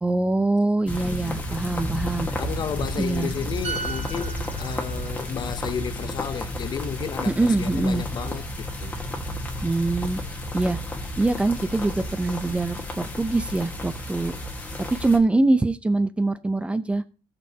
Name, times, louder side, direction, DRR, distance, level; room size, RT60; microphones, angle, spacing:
voice 1, 0.0-2.3 3.0-3.3 7.3-8.0 9.6-10.2 10.5-10.8 11.2-14.3 15.0-17.0, right 2 dB, 10° right, 0.5 m, -23 dB
voice 2, 0.9-9.0, left 8 dB, 40° left, 0.5 m, -33 dB
sound 1, 0.9-15.2, left 1 dB, 15° left, 1.4 m, -32 dB
sound 2, 3.6-7.2 7.6-7.8, right 5 dB, 75° right, 1.8 m, -38 dB
18.5 x 6.5 x 2.7 m
cardioid pair, 165°, 12 cm